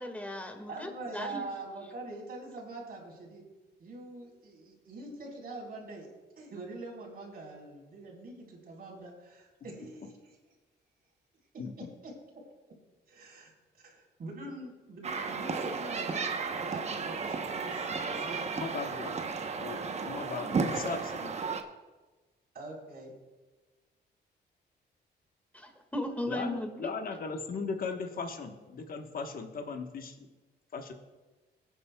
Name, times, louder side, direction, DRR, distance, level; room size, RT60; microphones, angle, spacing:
voice 1, 0.0-1.4 25.5-26.9, left 1 dB, 10° left, 4 dB, 1.8 m, -37 dB
voice 2, 0.7-3.4 3.8-6.1 6.4-10.4 11.5-12.1 13.1-13.5 13.8-16.2 16.6-18.5 22.5-23.1, right 2 dB, 55° right, -1 dB, 4.0 m, -44 dB
voice 3, 11.6-11.9 18.6-19.2 19.6-21.3 26.3-30.3 30.7-30.9, left 4 dB, 55° left, 4 dB, 1.2 m, -38 dB
sound 1, 15.0-21.6, right 5 dB, 40° right, 0.9 m, -34 dB
23.0 x 9.4 x 2.3 m, 1.2 s
cardioid pair, 100°, 18 cm